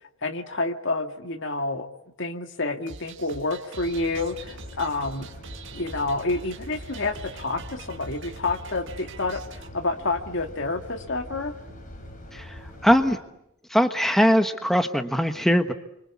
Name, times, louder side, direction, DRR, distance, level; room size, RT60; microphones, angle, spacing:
voice 1, 0.2-1.9 2.2-5.3 5.7-11.5, left 3 dB, 60° left, 7 dB, 2.0 m, -29 dB
sound 1, 2.9-9.7, right 3 dB, 65° right, 1.9 m, -44 dB
sound 2, 3.8-13.1, left 1 dB, 40° left, 5.5 m, -43 dB
voice 2, 12.3-13.2 13.7-15.7, equal, ahead, 7 dB, 1.2 m, -21 dB
28.5 x 25.0 x 8.4 m, 0.82 s
head